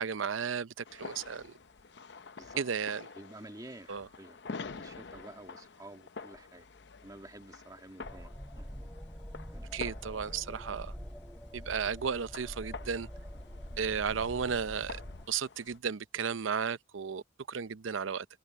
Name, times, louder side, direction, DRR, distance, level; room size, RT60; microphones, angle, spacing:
voice 1, 0.0-1.5 2.6-3.1 3.9-4.1 9.7-10.9 11.5-13.1 13.8-15.0 15.3-18.3, right 6 dB, 90° right, 0.6 m, -34 dB
sound 1, 0.8-15.8, left 4 dB, 60° left, 0.7 m, -48 dB
voice 2, 3.1-6.7 7.0-8.7 9.5-9.7, right 1 dB, 20° right, 1.7 m, -50 dB
sound 2, 8.0-15.2, equal, 5° left, 3.9 m, -45 dB
head